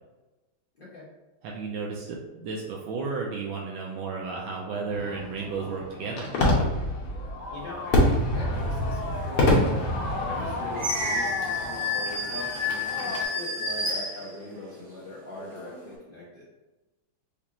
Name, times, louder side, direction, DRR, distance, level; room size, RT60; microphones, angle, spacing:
voice 1, 0.7-1.1 7.5-16.5, left 1 dB, 75° left, -7 dB, 0.5 m, -41 dB
voice 2, 1.4-6.3, right 4 dB, 80° right, -1 dB, 1.3 m, -33 dB
Fireworks, 4.9-13.2, left 1 dB, 90° left, 1.7 m, -27 dB
sound 1, 9.4-9.5 10.1-14.8 15.3-15.9, left 2 dB, 45° right, 1.8 m, -31 dB
5.2 x 2.4 x 2.8 m, 1.1 s
omnidirectional pair, 2.2 m